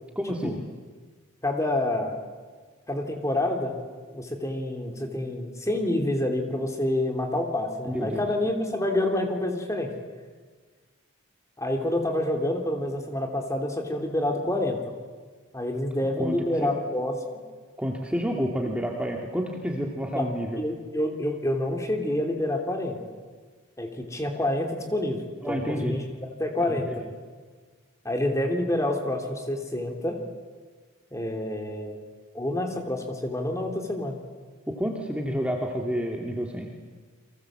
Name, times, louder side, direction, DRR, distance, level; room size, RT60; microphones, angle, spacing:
voice 1, 0.2-0.6 7.9-8.2 16.2-16.7 17.8-20.6 25.4-26.0 26.6-27.0 34.7-36.7, equal, 5° right, 0 dB, 2.0 m, -29 dB
voice 2, 1.4-2.2 2.9-3.7 4.1-9.9 11.6-14.8 15.5-17.2 20.1-20.3 20.6-23.0 23.8-26.0 26.4-26.9 28.0-30.2 31.1-32.0 32.3-34.2, left 1 dB, 15° left, 3 dB, 3.0 m, -28 dB
30.0 x 23.5 x 7.6 m, 1.5 s
head